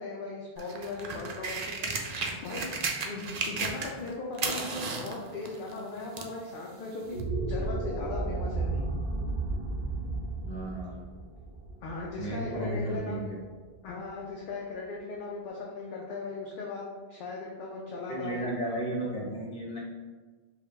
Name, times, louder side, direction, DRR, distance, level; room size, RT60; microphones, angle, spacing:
voice 1, 0.0-2.7 3.0-8.8 11.8-13.3 13.8-18.5, left 3 dB, 60° left, -2 dB, 0.7 m, -38 dB
sound 1, 0.6-4.1 4.3-6.4 7.2-7.3, right 4 dB, 55° right, 0.5 m, -34 dB
sound 2, 7.0-13.4, right 2 dB, 25° right, 1.5 m, -33 dB
voice 2, 10.4-11.0 12.1-13.4 18.1-19.8, right 1 dB, 40° left, -5 dB, 1.3 m, -34 dB
4.8 x 2.3 x 3.3 m, 1.4 s
omnidirectional pair, 1.0 m